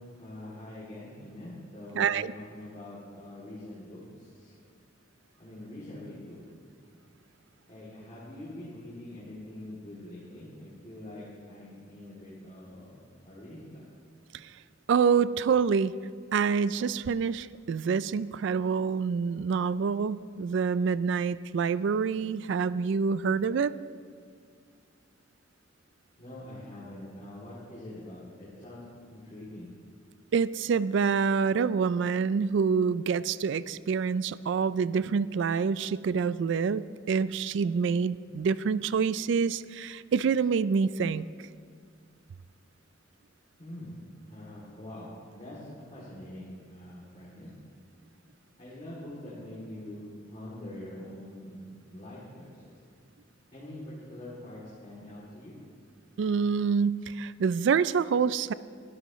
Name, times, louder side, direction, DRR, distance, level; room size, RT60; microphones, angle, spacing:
voice 1, 0.0-4.5 5.4-6.4 7.7-13.0 13.2-13.8 26.2-28.8 29.1-29.7 43.6-44.0 44.3-47.5 48.6-52.8 53.5-55.6, left 1 dB, 35° left, -8 dB, 2.7 m, -44 dB
voice 2, 2.0-2.3 14.9-15.9 16.3-23.7 30.3-41.2 56.2-58.5, right 6 dB, 60° right, 17 dB, 0.3 m, -27 dB
21.0 x 13.0 x 3.1 m, 2.2 s
head